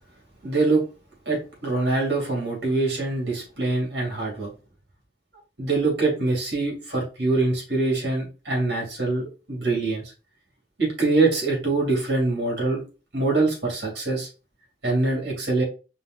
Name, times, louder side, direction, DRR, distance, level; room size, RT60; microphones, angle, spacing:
voice 1, 0.4-0.8 1.3-4.5 5.6-10.1 10.8-12.8 13.1-14.3 14.8-15.6, right 3 dB, 65° right, -1 dB, 2.5 m, -24 dB
5.2 x 2.5 x 3.8 m, 0.32 s
head